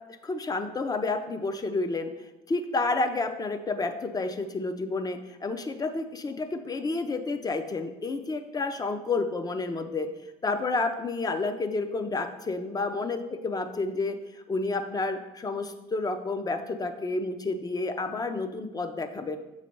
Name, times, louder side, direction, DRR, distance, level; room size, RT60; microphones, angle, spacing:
voice 1, 0.2-2.1 2.5-10.1 10.4-14.2 14.5-19.4, left 3 dB, 20° left, 8 dB, 0.6 m, -30 dB
6.7 x 3.2 x 5.2 m, 1.0 s
cardioid pair, 110°, 17 cm